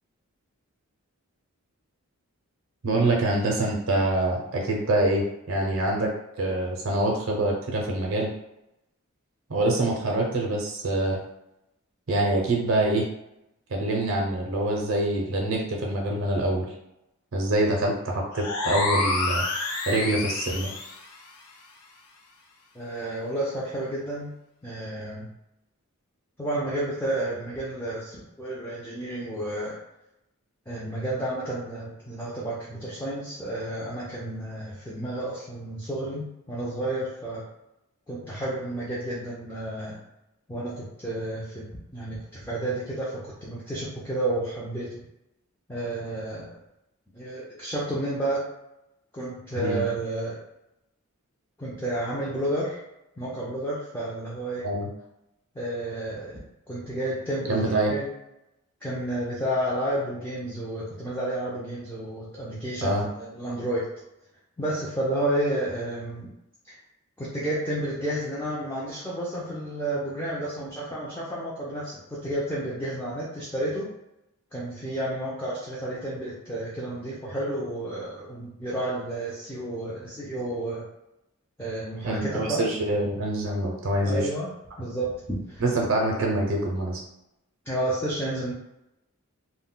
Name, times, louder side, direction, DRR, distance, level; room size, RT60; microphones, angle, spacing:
voice 1, 2.8-6.1 6.4-8.3 9.5-11.2 12.1-13.1 13.7-16.7 17.3-19.4 19.9-20.7 49.6-49.8 54.6-54.9 57.5-57.9 62.8-63.1 82.0-84.3 85.6-87.0, right 1 dB, 60° right, -1 dB, 0.5 m, -25 dB
sound 1, 18.3-21.0, left 2 dB, 90° left, 0.5 m, -28 dB
voice 2, 22.7-24.3 24.6-25.3 26.4-29.8 30.7-37.4 38.1-40.0 40.5-41.7 41.9-45.0 45.7-46.5 47.1-48.5 49.1-50.4 51.6-52.8 53.2-54.6 55.5-57.6 57.9-58.1 58.8-63.8 64.6-66.3 67.2-73.9 74.5-80.9 81.6-82.6 84.0-84.5 84.8-85.6 87.7-88.5, right 1 dB, 10° left, -8 dB, 0.4 m, -31 dB
2.2 x 2.1 x 3.7 m, 0.87 s
head